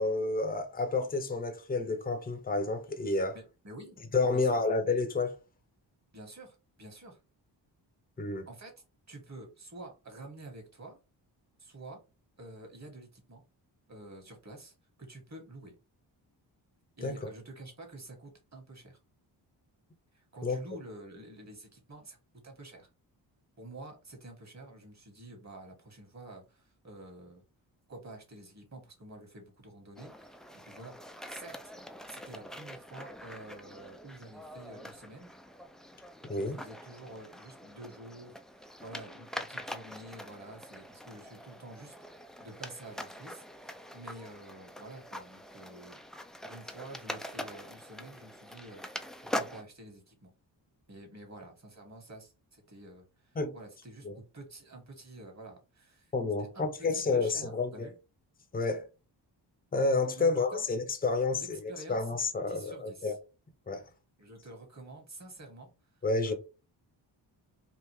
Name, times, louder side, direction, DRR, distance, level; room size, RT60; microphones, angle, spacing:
voice 1, 0.0-3.4 4.1-5.4 8.2-8.5 17.0-17.2 20.4-20.6 36.2-36.6 53.4-53.6 54.0-54.2 56.1-57.9 58.5-58.9 59.7-63.1 63.7-63.8 66.0-66.3, left 3 dB, 20° left, 0.8 m, -30 dB
voice 2, 3.3-4.0 4.3-4.6 6.1-7.2 8.5-8.7 9.1-11.0 11.6-12.0 12.4-13.4 13.9-15.8 17.0-19.0 20.1-22.9 23.6-27.4 27.9-31.7 32.1-35.3 36.3-46.0 46.4-50.3 50.9-54.1 54.3-56.1 56.4-57.9 60.2-60.7 61.3-62.1 62.5-63.2 64.2-66.3, right 2 dB, 35° right, 1.8 m, -49 dB
sound 1, 30.0-49.6, left 1 dB, ahead, 0.4 m, -44 dB
3.5 x 2.5 x 3.2 m
cardioid pair, 60°, 46 cm